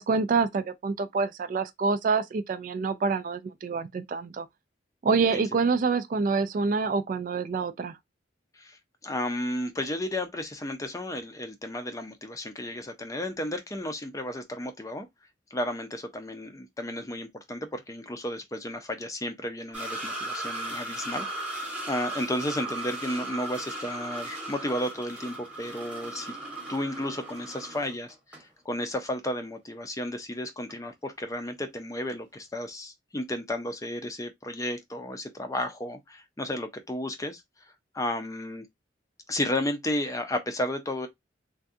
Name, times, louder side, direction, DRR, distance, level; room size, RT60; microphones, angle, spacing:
voice 1, 0.0-4.5 5.0-8.0, right 4 dB, 45° right, 0.3 m, -27 dB
voice 2, 8.5-15.1 15.5-26.4 26.7-38.7 39.3-41.1, left 1 dB, 20° left, 0.5 m, -33 dB
sound 1, 19.7-28.4 28.8-28.9 30.7-30.8, right 2 dB, 5° right, 1.0 m, -37 dB
3.5 x 2.2 x 2.6 m
head